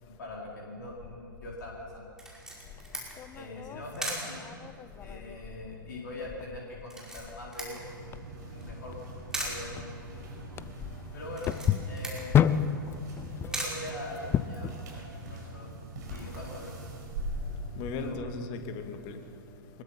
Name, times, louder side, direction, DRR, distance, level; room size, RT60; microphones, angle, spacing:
voice 1, 0.0-2.1 3.3-4.5 5.0-7.9 8.4-10.2 11.1-12.4 13.4-15.7 16.1-16.9 18.0-18.3, left 1 dB, 60° left, -2 dB, 4.2 m, -42 dB
Camera, 2.2-14.7, right 1 dB, 5° right, 5.3 m, -42 dB
sound 1, 2.6-14.8, left 9 dB, 20° left, 0.6 m, -33 dB
sound 2, 7.8-18.2, right 2 dB, 55° right, 5.7 m, -42 dB
voice 2, 10.6-11.2 17.4-17.5 17.7-19.8, left 4 dB, 40° left, 6 dB, 2.2 m, -39 dB
24.5 x 21.5 x 5.8 m, 2.5 s
figure-of-eight pair, 105°, 12 cm